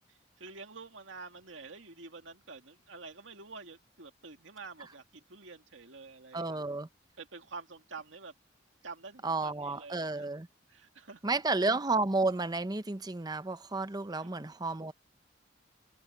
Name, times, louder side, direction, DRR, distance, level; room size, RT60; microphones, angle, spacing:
voice 1, 0.4-6.6 7.2-8.3 8.8-10.3 10.7-11.4 14.2-14.3, right 4 dB, 75° right, 2.1 m, -48 dB
voice 2, 6.3-6.9 9.2-10.5 11.2-14.9, right 3 dB, 20° right, 0.7 m, -31 dB
head